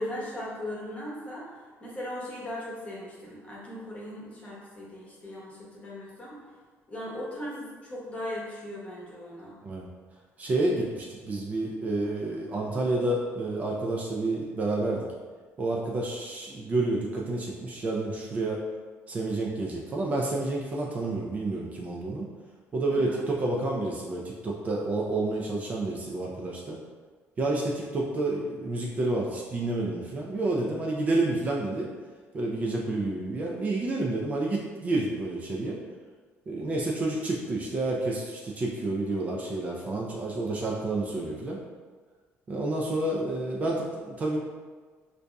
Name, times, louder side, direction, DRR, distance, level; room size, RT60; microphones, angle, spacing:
voice 1, 0.0-1.5 1.8-6.4 6.9-9.6 22.9-23.2, left 1 dB, 25° left, -5 dB, 0.9 m, -38 dB
voice 2, 10.4-15.1 15.6-18.6 19.1-22.3 22.7-26.8 27.4-31.9 32.3-35.8 36.5-41.6 42.5-44.4, right 2 dB, 30° right, -2 dB, 0.4 m, -29 dB
4.9 x 2.6 x 2.2 m, 1.5 s
cardioid pair, 150°, 5 cm